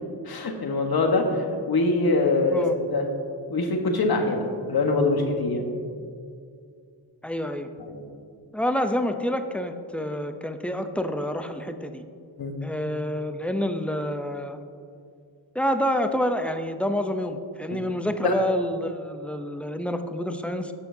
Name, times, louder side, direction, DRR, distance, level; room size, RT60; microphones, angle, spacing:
voice 1, 0.3-3.1 3.5-5.7 7.8-8.0 12.4-12.5 17.7-17.8 18.2-18.4, left 3 dB, 50° left, 3 dB, 1.3 m, -24 dB
voice 2, 7.2-7.7 8.5-12.0 12.6-14.6 15.5-20.7, equal, 5° left, 7 dB, 0.6 m, -28 dB
15.0 x 5.6 x 2.7 m, 2.2 s
cardioid pair, 55°, 47 cm